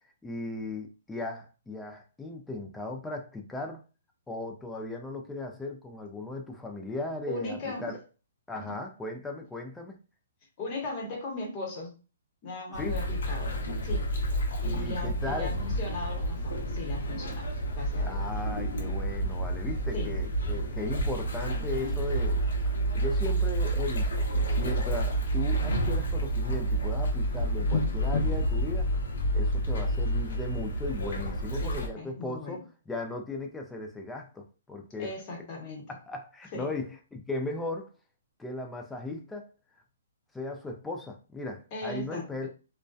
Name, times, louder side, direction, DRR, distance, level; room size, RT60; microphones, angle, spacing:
voice 1, 0.2-3.8 4.3-8.0 8.5-10.0 12.8-13.0 14.8-15.5 18.0-22.4 22.9-28.9 29.3-35.1 35.9-37.9 38.4-39.5 40.3-42.5, left 2 dB, 5° left, 0.3 m, -37 dB
voice 2, 7.3-7.8 8.5-8.8 10.6-11.9 12.4-13.5 13.8-14.1 14.6-18.2 19.9-20.2 31.6-32.6 35.0-35.8 36.5-36.7 41.7-42.3, left 2 dB, 25° left, 0.9 m, -38 dB
sound 1, 12.7-31.9, right 1 dB, 75° left, 0.8 m, -29 dB
2.5 x 2.1 x 2.3 m
hypercardioid pair, 165°, 0 cm